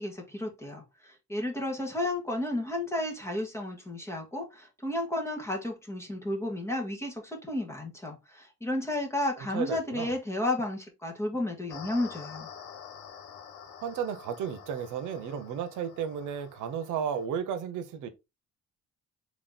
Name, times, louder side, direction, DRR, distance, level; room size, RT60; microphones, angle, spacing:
voice 1, 0.0-12.5, left 1 dB, 10° left, 1.8 m, -32 dB
voice 2, 9.4-10.1 13.8-18.1, right 8 dB, 90° right, 0.8 m, -33 dB
sound 1, 11.7-17.3, left 7 dB, 90° left, 1.2 m, -47 dB
4.1 x 3.1 x 3.9 m
cardioid pair, 90°, 30 cm